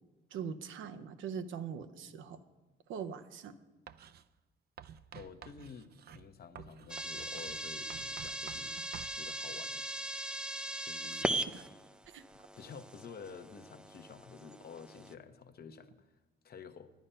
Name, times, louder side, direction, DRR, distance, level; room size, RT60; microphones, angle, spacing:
voice 1, 0.3-2.4 2.9-3.5 11.5-11.6 12.1-12.2, right 7 dB, 80° right, 10 dB, 0.7 m, -42 dB
Writing, 3.9-4.3 4.8-9.2, right 9 dB, 55° right, 0.5 m, -51 dB
voice 2, 5.1-8.8 9.1-9.9 10.8-11.5 12.6-16.9, left 6 dB, 50° left, 9 dB, 0.9 m, -50 dB
sound 1, 6.9-15.1, right 1 dB, 5° right, 0.5 m, -39 dB
10.5 x 9.9 x 5.6 m, 1.1 s
cardioid pair, 90°, 20 cm